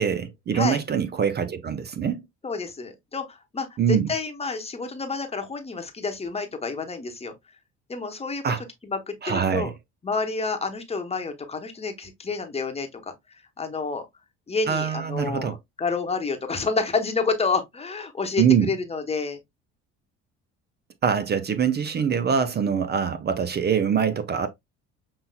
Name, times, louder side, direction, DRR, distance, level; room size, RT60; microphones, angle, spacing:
voice 1, 0.0-2.2 3.8-4.1 8.4-8.6 9.2-9.7 14.7-15.6 18.4-18.7 21.0-24.5, right 7 dB, 30° right, 0.5 m, -24 dB
voice 2, 2.4-7.3 7.9-8.4 8.8-9.7 10.0-13.1 13.6-14.1 14.5-19.4, left 4 dB, 20° left, 1.0 m, -29 dB
5.5 x 2.8 x 2.2 m
supercardioid pair, 75°, 32 cm